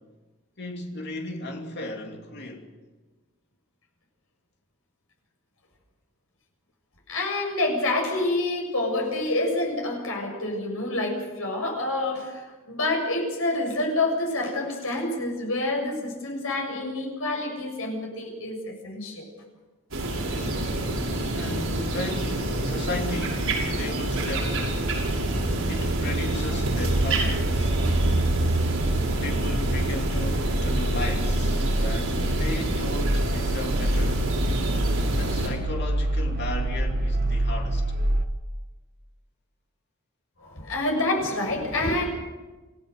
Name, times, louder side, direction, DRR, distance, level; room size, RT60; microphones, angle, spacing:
voice 1, 0.6-2.7 20.2-20.6 21.3-24.7 25.7-27.8 29.2-34.3 35.1-37.8, left 2 dB, 50° left, 2.9 m, -35 dB
voice 2, 7.1-19.3 40.4-42.1, left 2 dB, 70° left, 7.0 m, -27 dB
sound 1, 19.9-35.5, right 1 dB, 65° right, 6.6 m, -28 dB
sound 2, 23.6-38.3, right 1 dB, 45° right, 1.3 m, -27 dB
28.0 x 16.0 x 6.7 m
head